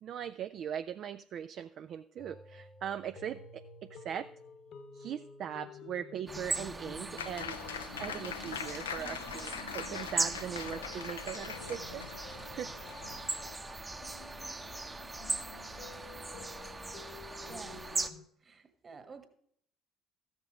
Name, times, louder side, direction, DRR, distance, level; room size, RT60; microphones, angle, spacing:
voice 1, 0.0-4.3 4.9-7.6 8.0-12.0 12.5-12.7, right 9 dB, 55° right, 0.4 m, -40 dB
sound 1, 2.2-18.2, left 5 dB, 55° left, 1.0 m, -51 dB
sound 2, 6.3-18.1, right 2 dB, 20° right, 0.8 m, -39 dB
Applause, 7.2-13.6, left 8 dB, 85° left, 0.4 m, -43 dB
voice 2, 16.8-17.9 18.4-19.3, right 5 dB, 35° right, 1.6 m, -52 dB
14.0 x 6.2 x 5.0 m
hypercardioid pair, 55°, 0 cm